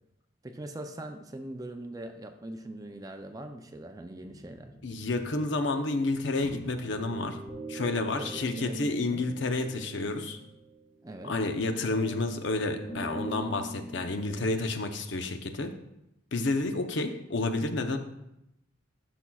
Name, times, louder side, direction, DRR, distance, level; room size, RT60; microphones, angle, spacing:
voice 1, 0.4-4.7 8.2-9.2 11.0-11.4, right 1 dB, 20° right, 6 dB, 0.4 m, -41 dB
sound 1, 4.2-14.4, right 1 dB, 40° left, 2.2 m, -44 dB
voice 2, 4.8-7.4 7.7-10.4 11.2-15.7 16.3-18.0, left 2 dB, 65° left, 7 dB, 0.7 m, -30 dB
12.5 x 6.0 x 2.3 m, 0.86 s
head